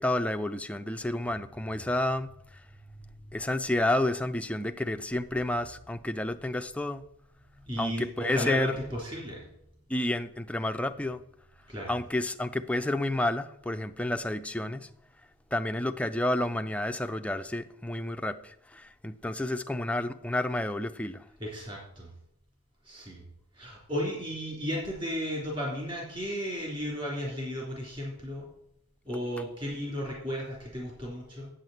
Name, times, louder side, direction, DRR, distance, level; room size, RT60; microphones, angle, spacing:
voice 1, 0.0-2.6 3.3-7.0 7.8-8.8 9.9-11.2 11.9-14.9 15.5-21.2, left 1 dB, 5° left, 8 dB, 0.4 m, -30 dB
voice 2, 7.7-9.4 11.7-11.9 21.4-22.1 22.8-23.2 23.5-28.5 29.0-31.5, equal, 25° right, -3 dB, 3.4 m, -34 dB
8.6 x 7.5 x 7.8 m, 0.79 s
head